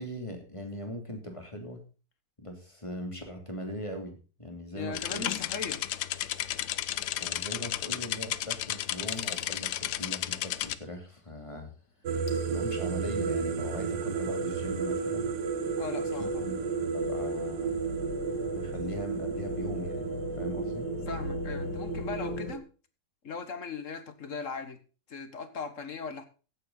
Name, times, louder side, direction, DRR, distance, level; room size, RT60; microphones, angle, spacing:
voice 1, 0.0-1.8 2.4-5.3 7.1-11.7 12.5-15.4 16.2-16.6 16.9-17.8 18.5-20.9, equal, 15° left, 4 dB, 2.8 m, -40 dB
voice 2, 4.7-5.8 15.8-16.5 21.1-22.7 23.2-24.8 25.1-26.3, left 5 dB, 45° left, 11 dB, 1.7 m, -38 dB
sound 1, 4.9-10.7, left 13 dB, 85° left, 1.5 m, -33 dB
sound 2, 9.1-10.3 12.3-22.5, left 3 dB, 70° left, 2.4 m, -42 dB
sound 3, 12.1-22.6, right 5 dB, 65° right, 1.5 m, -32 dB
16.0 x 8.9 x 4.0 m, 0.35 s
omnidirectional pair, 2.0 m